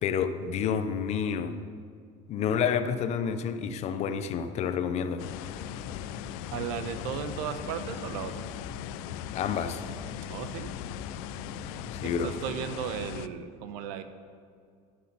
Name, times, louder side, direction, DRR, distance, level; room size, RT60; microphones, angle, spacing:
voice 1, 0.0-1.6 2.3-5.2 9.3-9.8 11.9-12.3, left 7 dB, 35° left, 11 dB, 0.6 m, -29 dB
sound 1, 5.2-13.3, left 14 dB, 90° left, 0.4 m, -39 dB
sound 2, 5.3-12.7, left 2 dB, 55° left, 2.1 m, -45 dB
voice 2, 6.5-8.5 10.3-10.7 12.2-14.0, right 8 dB, 90° right, 10 dB, 0.9 m, -35 dB
11.5 x 8.1 x 5.4 m, 2.2 s
cardioid pair, 160°, 19 cm